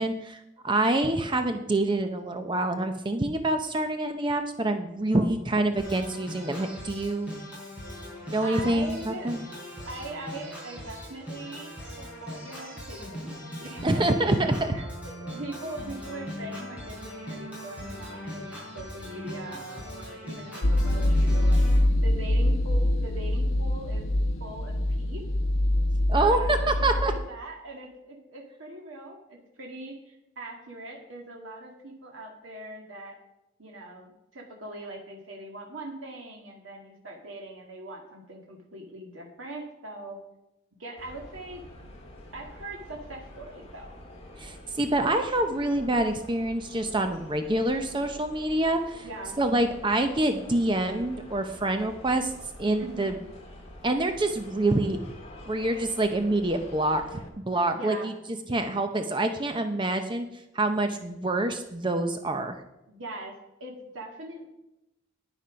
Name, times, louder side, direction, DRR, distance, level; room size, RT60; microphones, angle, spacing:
voice 1, 0.0-7.3 8.3-9.4 13.8-14.7 26.1-27.1 44.4-49.0 49.4-52.3 52.6-53.1 53.8-55.0 55.5-58.1 58.5-60.3 60.5-62.6, right 2 dB, 25° right, 7 dB, 0.6 m, -26 dB
Organ, 5.8-21.8, equal, 5° right, 5.1 m, -40 dB
voice 2, 8.4-9.3 9.9-11.8 12.2-13.3 13.6-14.3 14.7-24.0 24.4-25.2 26.1-33.2 33.6-40.2 40.8-41.7 42.3-44.0 49.0-49.4 52.8-53.2 57.7-58.1 62.9-64.5, right 1 dB, 80° right, 0 dB, 2.0 m, -41 dB
sound 1, 20.6-27.2, left 1 dB, 85° left, 0.8 m, -24 dB
sound 2, 41.0-57.3, left 1 dB, 30° left, 2.2 m, -47 dB
10.0 x 10.0 x 5.1 m, 0.91 s
head